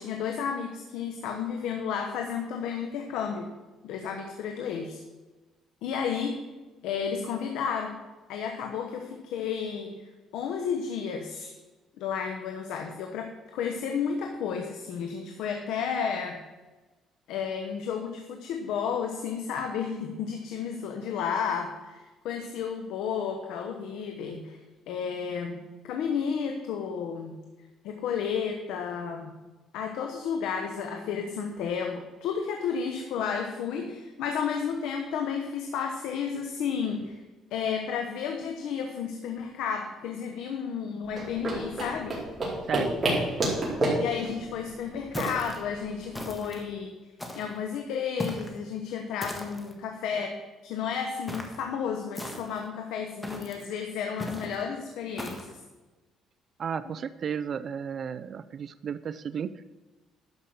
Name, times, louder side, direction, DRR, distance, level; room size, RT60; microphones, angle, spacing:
voice 1, 0.0-3.5 3.8-5.0 5.8-6.4 6.8-8.0 8.3-10.0 10.3-11.5 12.0-16.4 17.3-24.6 24.9-27.4 27.8-29.3 29.7-37.2 37.5-42.2 44.0-46.9 47.3-50.3 50.6-55.6, left 7 dB, 85° left, 4 dB, 1.0 m, -32 dB
sound 1, 41.0-46.2, right 1 dB, 30° right, 4.3 m, -30 dB
sound 2, 45.1-45.6 46.1-46.6 47.2-47.6 48.2-48.6 49.2-49.7 51.3-51.6 52.1-52.7 53.2-53.6 54.2-54.6 55.2-55.5, left 1 dB, 10° left, 1.6 m, -38 dB
voice 2, 56.6-59.7, right 7 dB, 45° right, 13 dB, 0.4 m, -33 dB
12.0 x 5.6 x 6.4 m, 1.2 s
cardioid pair, 115°, 0 cm